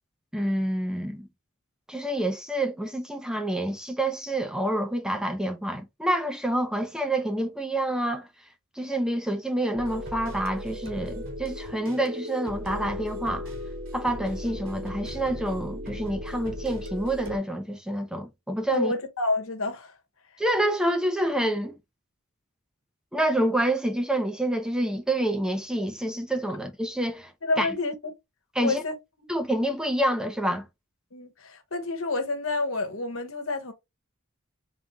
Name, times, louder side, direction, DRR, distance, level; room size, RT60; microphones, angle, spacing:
voice 1, 0.3-1.3 1.9-8.3 8.8-13.5 13.9-18.9 20.4-21.7 23.1-27.3 27.6-27.7 28.6-28.8 29.3-30.7, right 1 dB, 5° right, 0.6 m, -27 dB
sound 1, 9.8-17.4, left 1 dB, 70° right, 2.0 m, -36 dB
voice 2, 18.7-19.9 27.4-28.1 28.6-28.9 31.1-33.7, left 3 dB, 75° left, 1.1 m, -29 dB
4.1 x 3.7 x 2.3 m
head